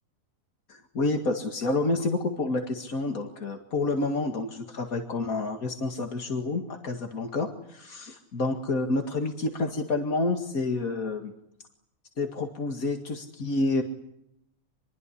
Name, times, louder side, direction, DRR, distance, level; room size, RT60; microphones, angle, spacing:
voice 1, 0.7-11.3 12.2-13.8, left 2 dB, 85° left, 4 dB, 2.5 m, -29 dB
26.5 x 21.5 x 10.0 m, 0.78 s
omnidirectional pair, 1.4 m